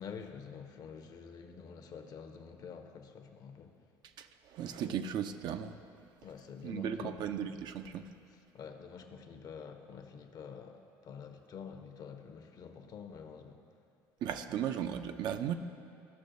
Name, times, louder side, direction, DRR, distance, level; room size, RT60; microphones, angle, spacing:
voice 1, 0.0-3.8 4.9-5.0 6.2-7.3 8.5-13.6, left 6 dB, 50° left, 6 dB, 0.7 m, -47 dB
voice 2, 4.2-5.8 6.6-8.1 14.2-15.5, right 9 dB, 60° right, 8 dB, 0.4 m, -36 dB
13.5 x 6.1 x 2.6 m, 2.5 s
supercardioid pair, 85°, 8 cm